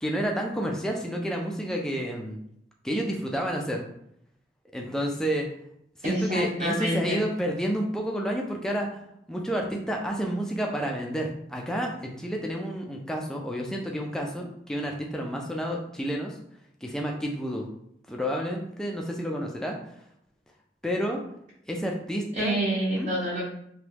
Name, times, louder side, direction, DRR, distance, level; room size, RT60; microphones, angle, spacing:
voice 1, 0.0-2.4 2.8-3.8 4.7-5.5 6.0-9.0 9.3-16.4 16.8-17.7 18.1-19.7 20.8-21.2 21.7-22.6 23.0-23.1, equal, 5° left, 0 dB, 0.4 m, -30 dB
voice 2, 6.0-7.2 22.3-23.4, right 1 dB, 40° right, -7 dB, 0.8 m, -27 dB
3.0 x 2.3 x 3.2 m, 0.74 s
head